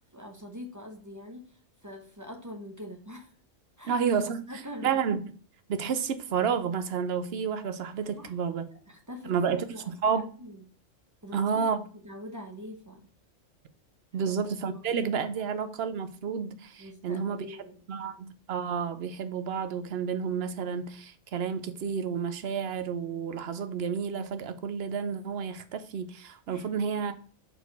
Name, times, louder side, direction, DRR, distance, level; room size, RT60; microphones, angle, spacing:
voice 1, 0.1-1.5 1.8-3.3 3.8-4.0 4.5-5.0 8.1-8.3 8.7-10.6 11.2-11.6 12.0-13.0 14.2-14.3 15.4-15.5 16.8-18.1 26.5-26.7, left 1 dB, 15° right, 0.7 m, -44 dB
voice 2, 3.8-4.5 4.8-5.3 5.7-8.6 9.2-10.2 11.3-11.8 14.1-17.6 17.9-27.2, right 6 dB, 60° right, 0.8 m, -30 dB
4.4 x 4.2 x 5.2 m
omnidirectional pair, 1.4 m